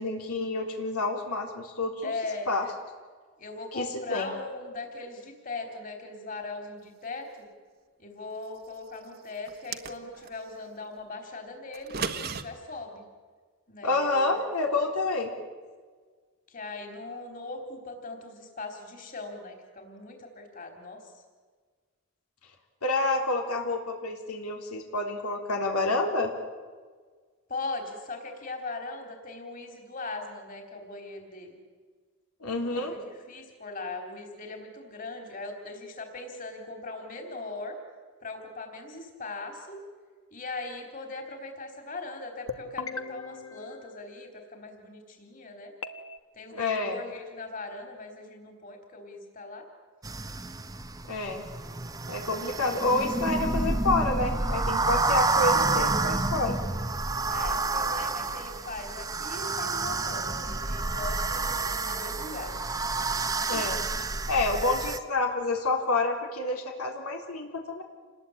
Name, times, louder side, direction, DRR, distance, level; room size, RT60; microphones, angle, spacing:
voice 1, 0.0-2.1 2.5-2.7 3.7-4.3 13.8-15.3 22.8-26.3 32.4-32.9 46.5-47.0 51.1-51.4 52.1-56.6 63.5-63.8 64.3-67.8, left 2 dB, 85° left, 2 dB, 3.7 m, -28 dB
voice 2, 2.0-2.5 3.4-7.5 8.0-13.0 13.7-14.3 16.5-21.0 27.5-31.6 32.7-37.8 38.2-39.8 40.3-45.7 46.3-49.7 57.3-62.8 63.5-63.6, left 3 dB, 40° left, 4 dB, 3.9 m, -39 dB
sound 1, 9.5-10.4 11.7-12.4, right 5 dB, 45° right, 1.3 m, -34 dB
sound 2, 42.5-44.6 45.8-46.2, left 5 dB, 70° left, 1.3 m, -40 dB
sound 3, 50.0-65.0, right 3 dB, 15° right, 0.8 m, -29 dB
28.5 x 20.5 x 8.9 m, 1.5 s
head